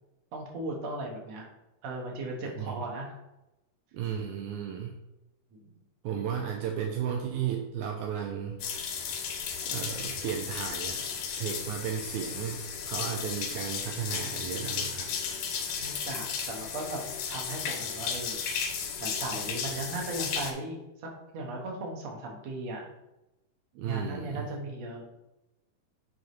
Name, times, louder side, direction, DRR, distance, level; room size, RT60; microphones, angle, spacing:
voice 1, 0.3-1.5 1.8-3.1 5.5-5.7 15.8-17.0 17.3-18.7 19.0-22.9 23.8-25.0, right 2 dB, 60° right, 0 dB, 2.3 m, -37 dB
voice 2, 2.4-2.8 3.9-5.0 6.0-8.7 9.7-11.0 11.4-15.1 23.8-24.5, right 8 dB, 80° right, 2 dB, 1.8 m, -34 dB
sound 1, 8.6-20.5, left 6 dB, 85° left, 2.8 m, -34 dB
9.0 x 5.0 x 3.2 m, 0.96 s
omnidirectional pair, 3.9 m